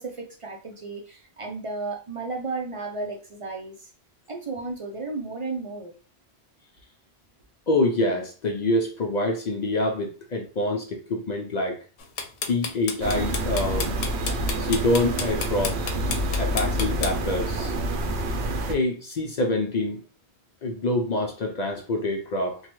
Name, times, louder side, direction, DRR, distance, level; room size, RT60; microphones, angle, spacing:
voice 1, 0.0-3.9 4.3-5.9, right 3 dB, 45° right, 0.4 m, -33 dB
voice 2, 7.7-11.8 12.5-14.0 14.6-15.8 16.4-17.7 18.7-20.0 20.6-22.6, left 2 dB, 55° left, 0.5 m, -26 dB
sound 1, 12.0-17.1, left 5 dB, 80° left, 0.9 m, -30 dB
sound 2, 13.0-18.8, right 1 dB, 85° right, 0.9 m, -27 dB
3.1 x 2.2 x 3.0 m
omnidirectional pair, 1.1 m